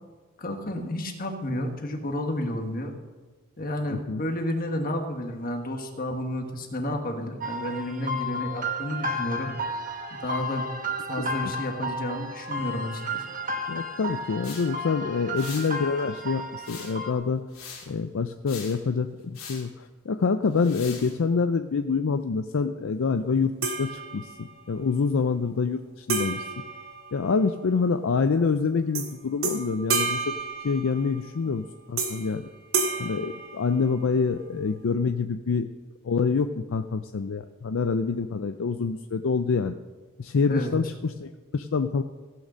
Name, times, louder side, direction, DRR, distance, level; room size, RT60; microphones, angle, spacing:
voice 1, 0.4-2.9 3.6-9.5 10.1-10.7 11.1-13.2 40.5-40.7, left 1 dB, 45° left, 4 dB, 1.5 m, -31 dB
voice 2, 3.9-4.2 11.2-11.5 13.7-17.4 17.9-26.4 27.1-30.3 30.6-32.5 33.0-35.7 36.0-39.8 40.2-42.0, left 5 dB, 65° left, 8 dB, 0.5 m, -26 dB
sound 1, 7.4-17.1, equal, 40° right, 1.2 m, -33 dB
sound 2, 14.4-14.7 15.4-15.8 16.6-17.1 17.5-17.9 18.5-18.8 19.3-19.7 20.6-21.1, left 6 dB, 85° left, 2.8 m, -41 dB
sound 3, 23.6-24.6 26.1-27.7 28.9-29.1 29.4-31.3 32.0-32.4 32.7-34.2, right 4 dB, 80° right, 1.9 m, -30 dB
16.0 x 6.5 x 6.3 m, 1.4 s
head